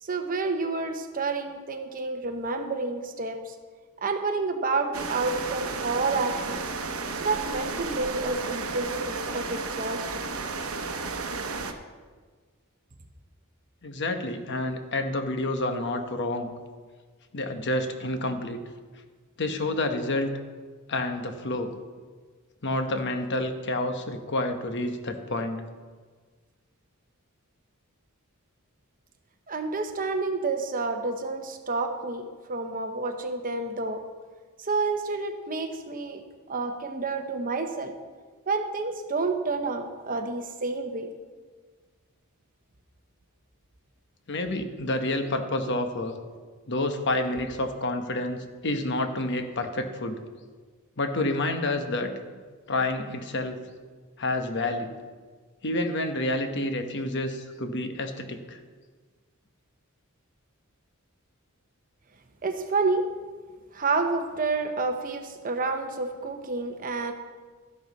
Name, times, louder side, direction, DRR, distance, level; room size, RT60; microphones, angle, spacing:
voice 1, 0.0-3.5 4.0-6.6 7.1-10.2 29.5-34.0 34.6-36.2 36.5-37.9 38.5-41.1 62.4-63.1 63.7-67.1, right 3 dB, 40° right, 6 dB, 1.0 m, -29 dB
sound 1, 4.9-11.7, right 4 dB, 75° right, 0.9 m, -33 dB
voice 2, 13.8-16.5 17.3-18.6 19.4-20.3 20.9-21.7 22.6-25.6 44.3-46.2 46.7-50.2 51.0-52.1 52.7-53.6 54.2-55.0 55.6-58.6, left 2 dB, 55° left, 6 dB, 1.0 m, -29 dB
13.0 x 11.0 x 4.1 m, 1.5 s
head